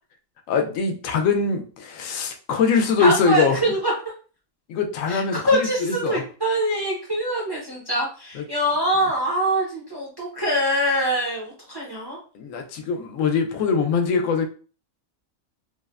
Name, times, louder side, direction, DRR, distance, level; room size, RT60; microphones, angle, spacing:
voice 1, 0.5-3.6 4.7-6.2 8.3-8.4 12.3-14.5, left 5 dB, 75° left, 5 dB, 0.9 m, -22 dB
voice 2, 3.0-3.9 5.1-5.2 5.5-12.2, right 1 dB, 30° right, -4 dB, 0.5 m, -24 dB
3.2 x 2.1 x 2.3 m, 0.39 s
omnidirectional pair, 1.4 m